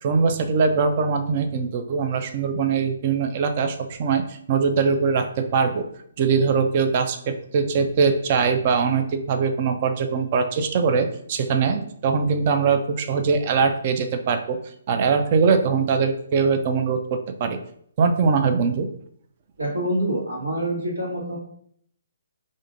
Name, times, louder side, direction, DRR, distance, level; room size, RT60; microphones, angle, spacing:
voice 1, 0.0-5.9 6.2-14.6 14.9-17.6 18.0-18.9, right 5 dB, 40° right, 7 dB, 0.4 m, -22 dB
voice 2, 19.6-21.4, right 1 dB, 80° right, -2 dB, 1.5 m, -26 dB
4.9 x 2.6 x 2.6 m, 0.66 s
figure-of-eight pair, 135°, 0 cm